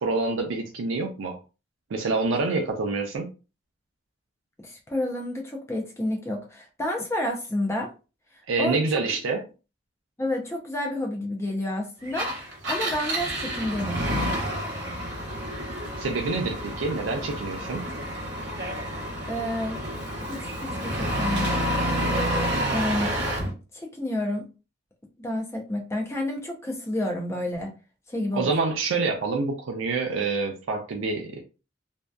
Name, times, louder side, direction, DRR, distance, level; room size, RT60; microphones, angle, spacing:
voice 1, 0.0-1.4 1.9-3.3 8.5-9.4 16.0-17.8 28.3-31.4, right 3 dB, 80° right, 0.4 m, -27 dB
voice 2, 4.6-7.9 8.6-8.8 10.2-14.0 18.8-18.9 19.3-19.8 20.2-21.5 22.7-23.1 23.5-24.5 25.2-27.7 28.1-28.5, left 1 dB, 15° left, 0.5 m, -30 dB
Engine, 12.1-23.5, equal, 60° right, 0.8 m, -29 dB
2.6 x 2.2 x 2.2 m
head